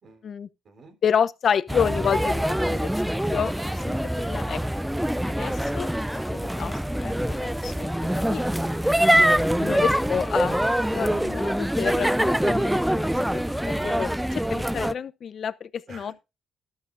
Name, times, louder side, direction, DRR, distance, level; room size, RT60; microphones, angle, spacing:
voice 1, 0.0-0.3 0.6-0.9 15.9-16.1, right 3 dB, 55° right, 4.1 m, -50 dB
voice 2, 1.0-2.9 3.3-4.6 5.2-5.9 6.3-8.4 9.6-10.7 10.9-12.8 13.1-16.1, left 7 dB, 55° left, 0.8 m, -29 dB
sound 1, 1.7-14.9, equal, 5° right, 0.5 m, -24 dB
12.5 x 11.5 x 2.6 m
cardioid pair, 90°, 0 cm